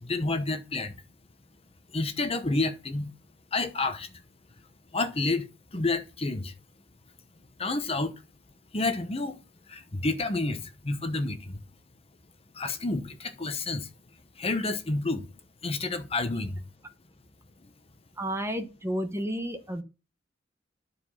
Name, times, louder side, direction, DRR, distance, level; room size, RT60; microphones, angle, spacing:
voice 1, 0.0-0.9 1.9-3.1 3.5-4.1 4.9-5.5 5.7-6.5 7.6-8.1 8.7-9.4 9.7-11.6 12.5-13.9 14.4-15.3 15.6-16.6, left 2 dB, 30° left, 0.9 m, -29 dB
voice 2, 18.2-19.8, equal, 15° right, 1.0 m, -31 dB
11.0 x 4.9 x 5.6 m
head